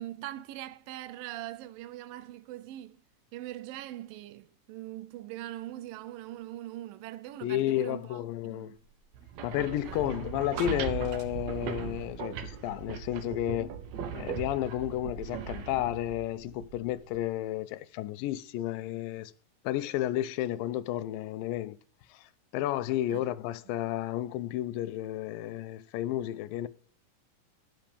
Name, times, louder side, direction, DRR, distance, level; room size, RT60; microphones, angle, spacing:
voice 1, 0.0-3.0 3.3-8.8 9.8-10.1 23.1-23.3 23.7-23.8, right 14 dB, 85° right, 2.4 m, -42 dB
voice 2, 7.4-8.8 9.4-13.7 14.1-19.3 19.6-21.8 22.1-22.2 22.5-26.7, left 13 dB, 85° left, 2.3 m, -32 dB
sound 1, 9.1-17.2, right 8 dB, 65° right, 1.9 m, -38 dB
10.5 x 6.1 x 5.1 m
omnidirectional pair, 4.0 m